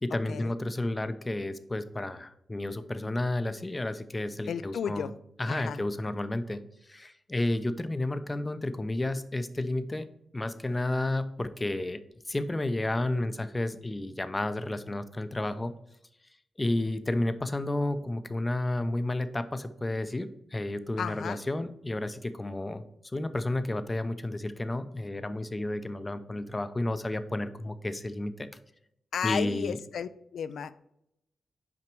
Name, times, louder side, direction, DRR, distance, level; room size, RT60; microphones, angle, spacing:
voice 1, 0.0-5.1 5.4-6.6 6.9-10.1 10.3-12.0 12.3-15.8 16.6-22.8 23.1-28.5 29.2-29.8, left 1 dB, 20° left, 11 dB, 0.5 m, -31 dB
voice 2, 4.5-5.1 5.5-5.8 21.0-21.4 29.1-30.8, left 7 dB, 80° left, 15 dB, 0.4 m, -33 dB
6.0 x 5.1 x 4.5 m, 0.79 s
cardioid pair, 100°, 0 cm